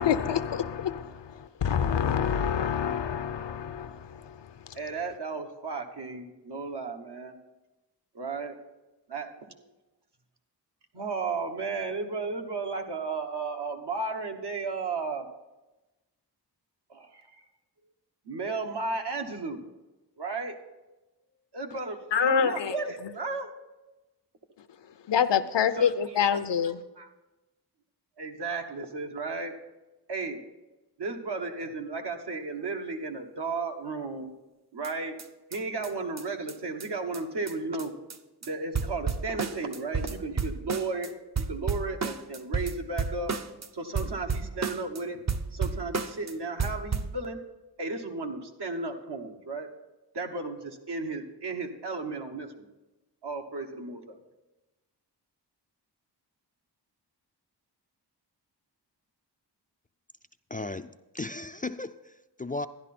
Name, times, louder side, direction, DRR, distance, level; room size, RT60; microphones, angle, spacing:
voice 1, 0.0-4.8 22.1-22.8 25.1-26.8, left 8 dB, 80° left, 0.7 m, -27 dB
voice 2, 4.7-7.4 8.1-8.6 9.1-9.6 10.9-15.3 16.9-17.4 18.2-19.6 20.2-20.6 21.5-23.5 25.8-25.9 27.0-27.1 28.2-29.5 30.1-30.4 31.0-34.3 34.7-35.2 35.5-37.9 38.4-41.1 41.4-43.3 43.7-45.2 45.5-47.4 47.8-49.7 50.1-52.7 53.2-54.2, right 3 dB, 70° right, 1.3 m, -34 dB
sound 1, 34.8-34.9 35.2-35.3 35.5-35.6 35.8-35.9 36.2-36.3 36.5-36.6 36.8-36.9 37.1-37.2 37.5-37.6 37.8-38.2 38.4-38.5 38.7-41.1 41.4-43.7 44.0-45.0 45.3-46.3 46.6-47.2, right 5 dB, 40° right, 0.7 m, -32 dB
voice 3, 60.5-60.9 61.1-62.7, left 2 dB, 20° left, 0.3 m, -35 dB
12.5 x 11.0 x 4.3 m
wide cardioid pair, 65°, 42 cm